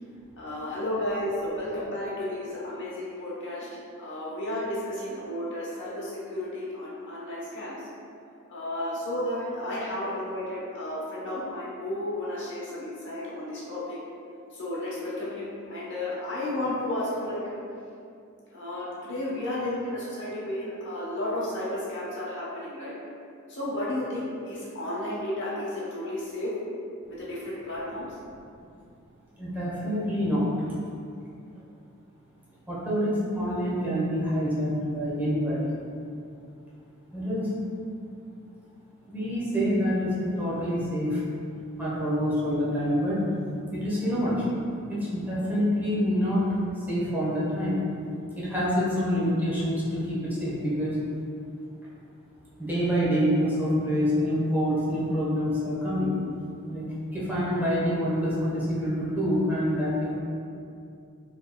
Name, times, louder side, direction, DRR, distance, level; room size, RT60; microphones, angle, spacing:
voice 1, 0.4-3.7 4.0-7.8 8.5-14.0 14.5-17.6 18.5-23.0 23.5-26.5 27.2-28.1, left 1 dB, 60° left, -7 dB, 1.0 m, -32 dB
voice 2, 29.4-30.5 32.7-35.6 37.1-37.5 39.1-41.2 41.8-43.3 43.7-44.4 44.9-46.5 46.9-47.8 48.4-51.0 52.6-56.1 56.7-56.8 57.1-60.1, equal, 10° right, -9 dB, 1.0 m, -26 dB
5.2 x 3.2 x 2.2 m, 2.4 s
head